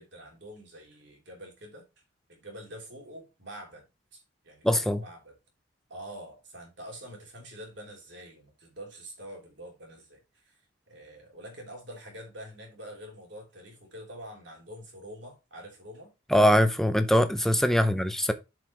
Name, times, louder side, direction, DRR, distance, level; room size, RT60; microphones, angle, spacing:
voice 1, 0.0-1.8 2.3-3.8 4.1-5.3 5.9-10.6 10.9-16.1 17.7-17.9, equal, 55° right, 3.4 m, -46 dB
voice 2, 4.6-5.0 16.3-18.3, equal, ahead, 0.6 m, -22 dB
7.3 x 5.1 x 4.6 m
head